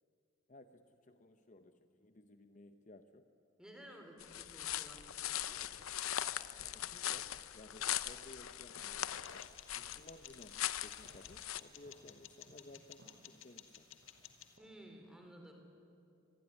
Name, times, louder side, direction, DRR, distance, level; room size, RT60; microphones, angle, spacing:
voice 1, 0.5-3.3 6.7-9.2 9.7-14.0, left 2 dB, 35° left, 8 dB, 0.8 m, -58 dB
voice 2, 3.6-5.6 14.6-15.5, equal, 5° right, 3 dB, 3.6 m, -55 dB
sound 1, 4.2-11.6, left 12 dB, 85° left, 0.8 m, -40 dB
sound 2, 5.5-14.8, equal, 60° right, 7.2 m, -67 dB
sound 3, 9.2-14.6, left 10 dB, 70° left, 1.8 m, -56 dB
24.5 x 21.5 x 9.9 m, 2.7 s
head